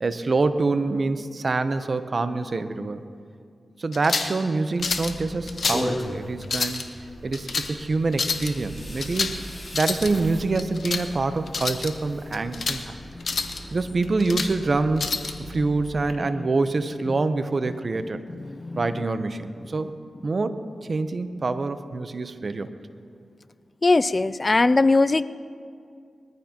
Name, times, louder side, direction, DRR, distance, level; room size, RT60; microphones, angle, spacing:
voice 1, 0.0-3.0 3.8-6.9 7.2-9.4 9.7-13.0 13.7-15.1 15.5-18.2 18.8-19.9 20.2-20.6 20.9-22.7, right 3 dB, 55° right, 11 dB, 0.8 m, -26 dB
sound 1, 3.9-4.4 4.8-5.1 5.5-5.9 6.4-6.8 7.3-7.7 8.1-8.5 9.0-9.4 9.7-10.1 10.6-11.0 11.5-11.9 12.3-12.8 13.2-13.6 14.0-14.5 15.0-15.3, left 4 dB, 70° left, 1.0 m, -28 dB
sound 2, 4.8-16.1, equal, 20° left, 3.2 m, -38 dB
voice 2, 13.1-13.8 15.4-15.8 16.3-16.5 17.7-19.0 23.8-25.2, left 3 dB, 40° left, 16 dB, 0.4 m, -23 dB
21.0 x 14.0 x 2.9 m, 2.3 s
cardioid pair, 50°, 0 cm